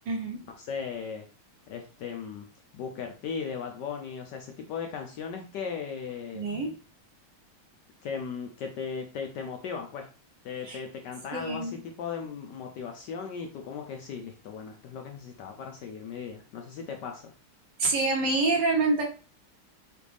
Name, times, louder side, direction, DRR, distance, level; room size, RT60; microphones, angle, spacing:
voice 1, 0.1-0.4 6.3-6.7 10.7-10.8 11.3-11.7 17.8-19.0, right 3 dB, 60° right, -1 dB, 1.5 m, -26 dB
voice 2, 0.6-1.3 1.7-2.5 2.7-6.5 8.0-10.1 10.4-17.3, left 6 dB, 75° left, 4 dB, 1.0 m, -37 dB
5.1 x 2.4 x 3.3 m, 0.35 s
omnidirectional pair, 2.4 m